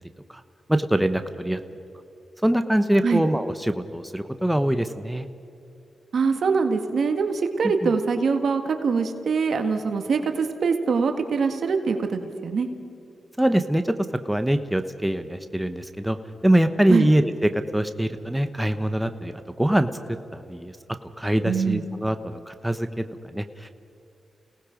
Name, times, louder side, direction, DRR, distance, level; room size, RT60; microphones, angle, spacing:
voice 1, 0.7-1.6 2.4-5.3 7.8-7.9 13.4-13.9 14.2-16.2 16.4-19.9 20.3-20.7 21.2-23.7, right 1 dB, 5° right, 8 dB, 1.1 m, -23 dB
voice 2, 6.1-12.7 16.9-17.1 21.4-21.8, right 5 dB, 70° right, 6 dB, 1.7 m, -23 dB
29.5 x 18.5 x 5.2 m, 2.6 s
cardioid pair, 55°, 0 cm